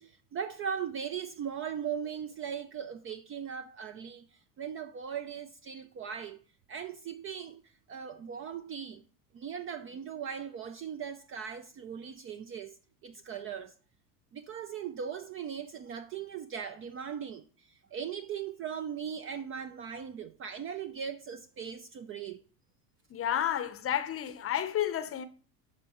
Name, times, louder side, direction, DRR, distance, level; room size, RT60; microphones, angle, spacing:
voice 1, 0.0-4.2 4.6-6.4 6.7-7.6 7.9-9.0 9.3-13.7 14.3-17.4 17.9-22.4, right 7 dB, 30° right, 0.4 m, -39 dB
voice 2, 23.1-25.3, left 10 dB, 30° left, 0.7 m, -31 dB
11.0 x 5.2 x 3.0 m
hypercardioid pair, 90°, 49 cm